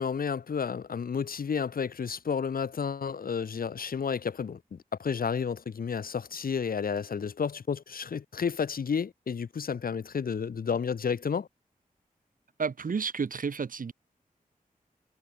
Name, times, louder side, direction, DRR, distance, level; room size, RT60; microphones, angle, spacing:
voice 1, 0.0-11.5, left 6 dB, 85° left, 1.7 m, -31 dB
voice 2, 12.6-13.9, right 5 dB, 70° right, 2.2 m, -31 dB
wide cardioid pair, 100°, 15 cm